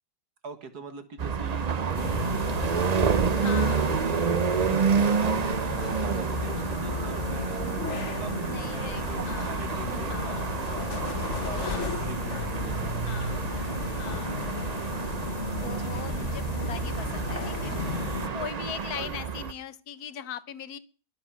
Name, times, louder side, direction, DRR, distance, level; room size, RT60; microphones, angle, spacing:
voice 1, 0.4-7.9 8.2-13.8 15.6-16.3 19.0-19.1, right 4 dB, 70° right, 9 dB, 2.3 m, -42 dB
sound 1, 1.2-19.5, right 6 dB, 50° right, 0.4 m, -29 dB
sound 2, 1.9-18.3, left 6 dB, 45° left, 1.5 m, -34 dB
voice 2, 3.4-4.4 8.4-10.8 11.6-12.0 13.1-13.6 14.0-14.8 15.6-17.9 18.3-20.8, left 10 dB, 70° left, 17 dB, 1.4 m, -41 dB
21.5 x 7.4 x 6.2 m, 0.39 s
omnidirectional pair, 1.7 m